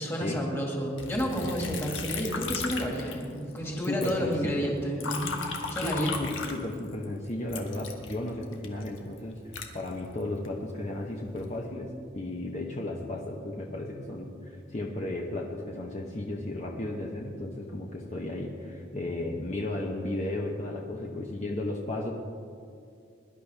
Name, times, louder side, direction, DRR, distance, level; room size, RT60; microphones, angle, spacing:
voice 1, 0.0-5.3 5.7-6.2, equal, 15° left, -1 dB, 2.1 m, -31 dB
Liquid, 1.0-3.6 3.8-7.0 7.5-10.5 11.1-11.6, left 4 dB, 85° left, 1.5 m, -36 dB
voice 2, 3.7-4.7 5.8-22.1, left 1 dB, 35° left, -2 dB, 1.0 m, -34 dB
21.5 x 11.5 x 3.5 m, 2.4 s
head